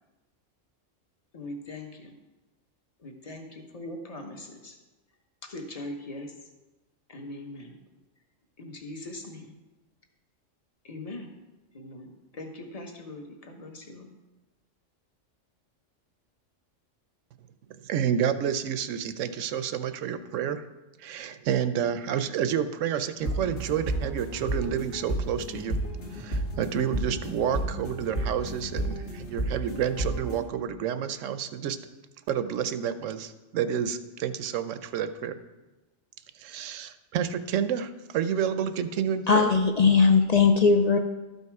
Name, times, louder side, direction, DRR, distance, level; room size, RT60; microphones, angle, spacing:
voice 1, 1.3-2.1 3.0-4.8 5.4-6.3 7.1-7.8 8.6-9.5 10.8-11.3 11.7-14.2, left 1 dB, 30° left, 4 dB, 1.1 m, -41 dB
voice 2, 17.7-20.7 21.0-25.8 26.1-31.8 32.3-35.4 36.4-39.5, right 8 dB, 75° right, 11 dB, 1.0 m, -29 dB
sound 1, 23.2-30.4, right 1 dB, 85° left, 1.9 m, -32 dB
voice 3, 39.3-41.0, left 5 dB, 55° left, 5 dB, 0.4 m, -19 dB
12.5 x 5.5 x 4.6 m, 1.1 s
omnidirectional pair, 1.3 m